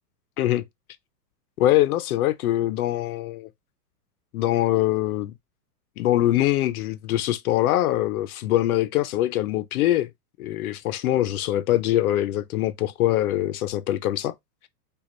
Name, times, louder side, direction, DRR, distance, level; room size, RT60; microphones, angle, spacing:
voice 1, 1.6-3.5 4.3-5.3 6.0-10.1 10.4-14.3, left 14 dB, 65° left, 0.6 m, -23 dB
5.0 x 2.4 x 4.0 m
hypercardioid pair, 135°, 48 cm